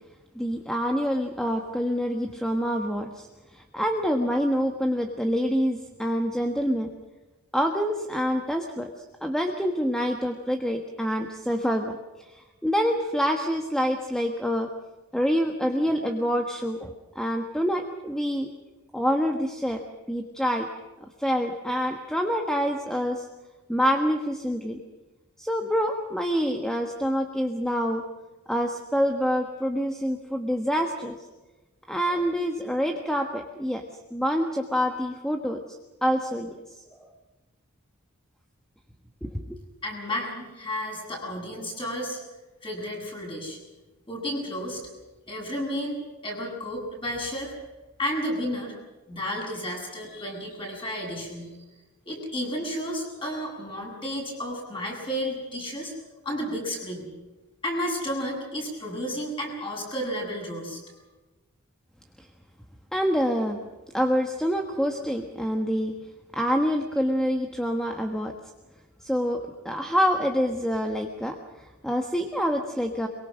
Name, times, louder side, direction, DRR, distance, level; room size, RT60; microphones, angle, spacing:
voice 1, 0.3-6.9 7.5-14.7 15.1-18.5 18.9-19.8 20.1-20.7 21.0-23.3 23.7-24.8 25.4-28.0 28.5-31.2 31.9-33.8 34.1-35.6 36.0-37.1 39.2-39.6 62.2-62.3 62.9-63.6 63.9-65.9 66.3-68.4 69.0-73.1, equal, 5° left, 3 dB, 1.3 m, -26 dB
voice 2, 39.8-42.2 42.6-43.6 44.1-44.8 45.3-47.5 48.0-48.7 49.1-51.5 52.1-55.9 56.2-57.1 57.6-60.8, equal, 25° left, -1 dB, 7.5 m, -32 dB
23.0 x 23.0 x 6.3 m, 1.1 s
head